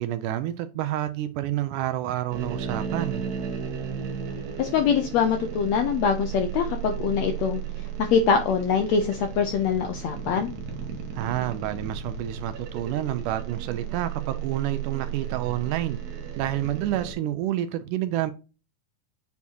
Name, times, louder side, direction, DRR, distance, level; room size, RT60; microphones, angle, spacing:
voice 1, 0.0-3.3 11.2-18.3, right 13 dB, 80° right, 2.0 m, -29 dB
sound 1, 2.3-17.1, right 7 dB, 65° right, 2.4 m, -34 dB
voice 2, 4.6-7.6 8.0-10.5, left 6 dB, 80° left, 1.5 m, -23 dB
8.2 x 4.3 x 2.8 m
omnidirectional pair, 3.8 m